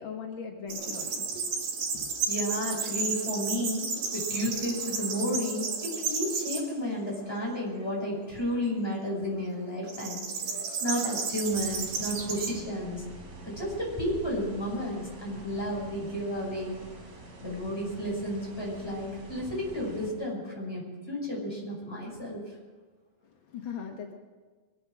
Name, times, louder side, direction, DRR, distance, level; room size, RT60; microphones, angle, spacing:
voice 1, 0.0-1.3 1.9-2.1 23.2-24.1, left 7 dB, 80° left, 2 dB, 1.1 m, -39 dB
sound 1, 0.7-6.6 7.2-7.7 9.9-12.5, right 5 dB, 70° right, 4.0 m, -32 dB
voice 2, 2.3-10.3 10.5-13.1 13.4-16.8 17.4-22.5, equal, 5° left, -4 dB, 5.5 m, -32 dB
sound 2, 11.5-20.1, right 2 dB, 50° right, 4.1 m, -46 dB
23.0 x 9.2 x 6.4 m, 1.4 s
omnidirectional pair, 4.2 m